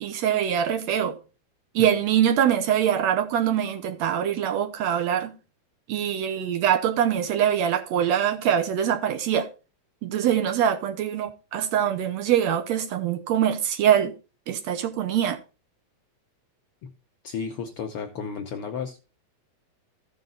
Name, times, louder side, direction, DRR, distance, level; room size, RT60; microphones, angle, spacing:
voice 1, 0.0-1.2 1.8-5.4 5.9-9.5 10.0-14.1 14.5-15.4, right 9 dB, 75° right, 1.8 m, -23 dB
voice 2, 17.2-19.0, left 6 dB, 70° left, 1.4 m, -33 dB
14.5 x 5.2 x 3.9 m
omnidirectional pair, 3.4 m